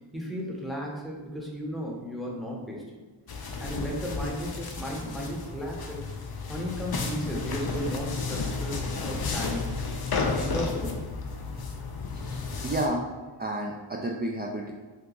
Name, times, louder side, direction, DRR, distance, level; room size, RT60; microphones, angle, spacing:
voice 1, 0.1-3.0 3.6-6.0 6.5-9.6 10.1-11.0 12.2-12.6, equal, ahead, -3 dB, 0.8 m, -35 dB
sound 1, 3.3-12.9, left 4 dB, 50° left, 0.5 m, -32 dB
voice 2, 12.1-13.1 13.4-14.7, right 1 dB, 25° right, -1 dB, 0.3 m, -31 dB
2.9 x 2.2 x 3.7 m, 1.3 s
wide cardioid pair, 40°, 48 cm